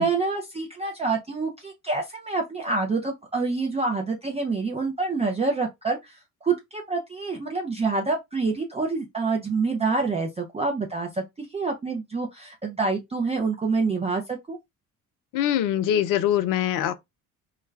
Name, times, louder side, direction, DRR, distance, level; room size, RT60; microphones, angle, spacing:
voice 1, 0.0-14.6, right 4 dB, 15° right, 0.5 m, -27 dB
voice 2, 15.3-16.9, left 11 dB, 50° left, 0.5 m, -23 dB
2.3 x 2.2 x 3.1 m
figure-of-eight pair, 45°, 43 cm